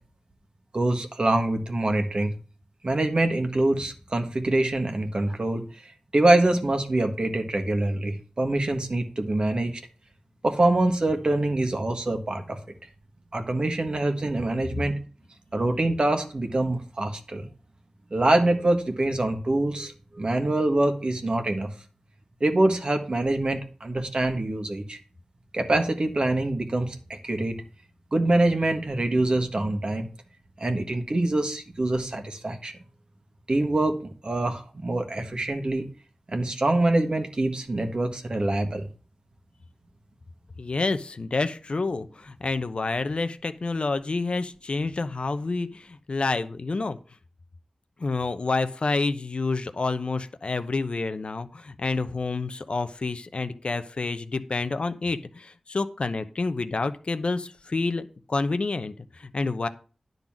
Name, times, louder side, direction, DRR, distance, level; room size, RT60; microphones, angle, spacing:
voice 1, 0.7-2.3 2.8-5.6 6.1-9.8 10.4-12.6 13.3-15.0 15.5-17.5 18.1-21.7 22.4-25.0 25.5-27.6 28.1-30.1 30.6-32.7 33.5-34.0 34.2-35.8 36.3-38.9, right 2 dB, 50° right, 5 dB, 1.5 m, -25 dB
voice 2, 40.6-47.0 48.0-59.7, left 3 dB, 60° left, 10 dB, 0.8 m, -28 dB
10.5 x 4.0 x 7.3 m, 0.38 s
wide cardioid pair, 70°, 2 cm